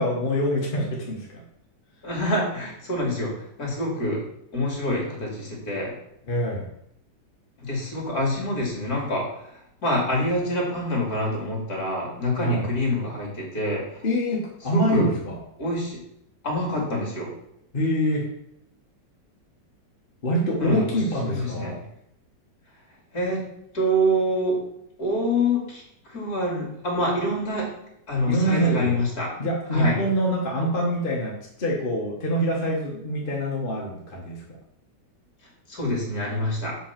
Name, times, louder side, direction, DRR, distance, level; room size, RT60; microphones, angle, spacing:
voice 1, 0.0-1.4 6.3-6.7 12.4-12.7 14.0-15.4 17.7-18.2 20.2-21.8 28.3-29.0 29.4-34.4, equal, 30° left, -3 dB, 1.4 m, -25 dB
voice 2, 2.0-4.2 4.5-5.9 7.6-14.0 14.7-15.1 15.6-16.0 16.4-17.3 20.6-21.8 23.1-23.4 23.7-24.6 25.0-27.7 28.1-29.3 29.7-30.0 35.7-36.8, left 1 dB, 55° left, -2 dB, 3.1 m, -26 dB
6.4 x 5.7 x 5.9 m, 0.77 s
omnidirectional pair, 2.0 m